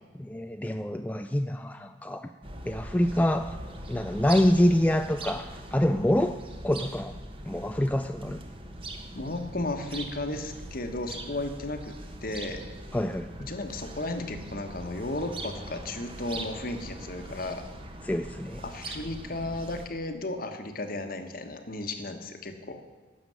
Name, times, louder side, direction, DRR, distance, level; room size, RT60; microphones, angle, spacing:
voice 1, 0.2-2.3 2.7-3.6 3.9-6.4 6.6-7.2 7.5-8.4 12.9-13.5 18.0-18.6, left 1 dB, 10° left, 7 dB, 0.4 m, -26 dB
sound 1, 2.4-19.9, right 1 dB, 30° right, 1.2 m, -41 dB
voice 2, 9.1-11.9 12.2-12.6 13.5-17.6 18.6-22.8, left 2 dB, 50° left, 7 dB, 1.3 m, -34 dB
12.0 x 7.0 x 9.3 m, 1.4 s
head